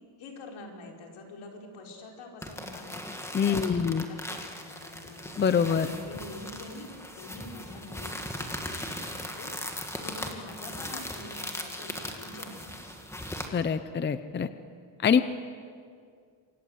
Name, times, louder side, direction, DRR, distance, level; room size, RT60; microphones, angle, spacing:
voice 1, 0.2-5.2 5.7-13.0, left 2 dB, 80° left, 1 dB, 5.0 m, -45 dB
sound 1, 2.4-13.5, left 1 dB, 5° left, 1.8 m, -39 dB
voice 2, 3.3-4.0 5.4-5.9 13.5-14.5 15.0-15.2, left 7 dB, 25° left, 12 dB, 0.6 m, -24 dB
27.5 x 24.5 x 8.1 m, 2.2 s
cardioid pair, 175°, 48 cm